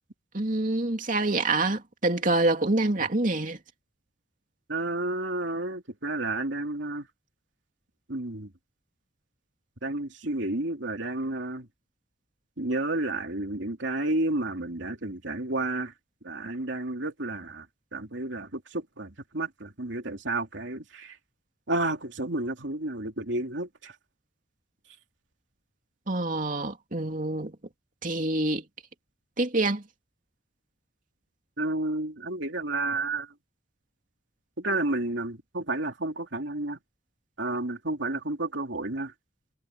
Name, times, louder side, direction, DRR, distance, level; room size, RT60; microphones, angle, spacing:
voice 1, 0.3-3.6 26.1-27.5 28.0-28.6 29.4-29.8, right 2 dB, 45° right, 2.8 m, -26 dB
voice 2, 4.7-7.1 8.1-8.5 9.8-11.7 12.6-15.9 16.2-17.7 17.9-21.2 21.7-23.9 31.6-33.3 34.6-36.8 37.4-39.1, right 2 dB, 70° right, 3.0 m, -31 dB
head